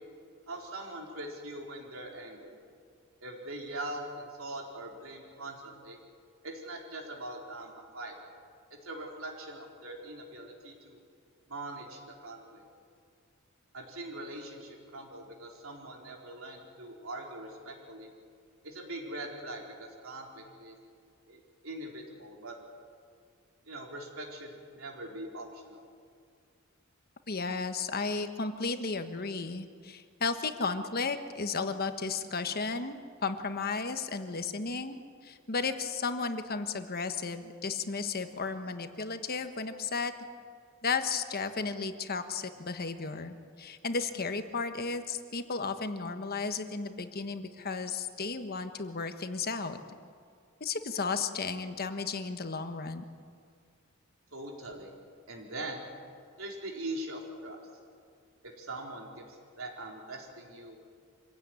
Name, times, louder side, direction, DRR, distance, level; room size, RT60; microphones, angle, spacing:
voice 1, 0.5-2.6 3.2-6.0 6.4-8.1 8.8-11.0 11.5-12.6 13.7-18.1 18.6-20.7 21.3-22.5 23.6-25.8 54.3-54.9 55.3-55.9 56.4-57.6 58.4-60.8, right 1 dB, 70° right, 0 dB, 4.4 m, -42 dB
voice 2, 27.3-40.1 40.8-49.8 50.6-53.0, left 4 dB, 45° left, 8 dB, 1.3 m, -34 dB
25.5 x 16.5 x 9.7 m, 2.2 s
head